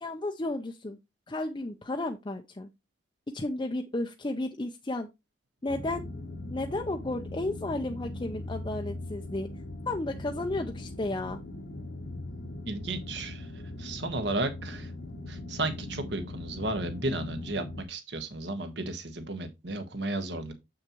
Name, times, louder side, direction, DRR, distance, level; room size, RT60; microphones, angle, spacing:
voice 1, 0.0-1.0 1.3-2.7 3.3-5.1 5.6-6.0 6.5-9.5 9.9-11.4, left 2 dB, 25° left, 0.6 m, -33 dB
sound 1, 5.7-17.8, left 1 dB, 65° left, 1.1 m, -40 dB
voice 2, 12.7-13.5 13.8-14.9 15.3-20.5, right 2 dB, 65° right, 1.4 m, -33 dB
7.2 x 6.5 x 3.0 m
head